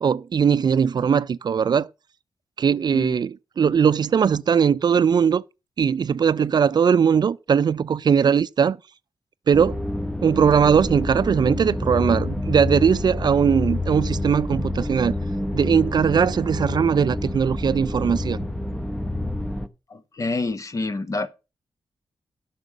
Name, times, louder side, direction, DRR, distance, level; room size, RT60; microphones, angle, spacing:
voice 1, 0.0-1.9 2.6-5.4 5.8-8.8 9.5-9.8 10.2-15.2 15.5-18.4, right 7 dB, 55° right, 0.4 m, -20 dB
sound 1, 9.5-19.7, left 1 dB, 5° left, 0.8 m, -28 dB
voice 2, 19.9-21.3, left 3 dB, 40° left, 1.2 m, -27 dB
9.4 x 6.2 x 6.2 m
cardioid pair, 85°, 8 cm